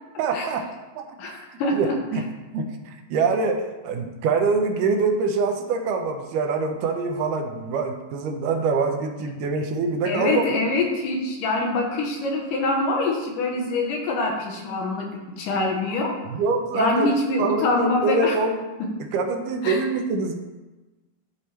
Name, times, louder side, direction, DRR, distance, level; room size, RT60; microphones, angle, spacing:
voice 1, 0.2-0.7 1.0-1.1 1.8-2.3 2.5-10.4 16.3-17.1 17.4-18.7 19.1-20.4, right 4 dB, 85° right, 4 dB, 2.2 m, -24 dB
voice 2, 1.2-2.0 10.1-16.2 16.7-18.4 18.8-18.9 19.6-19.8, left 2 dB, 75° left, 1 dB, 2.6 m, -24 dB
11.5 x 4.2 x 3.2 m, 1.1 s
omnidirectional pair, 3.8 m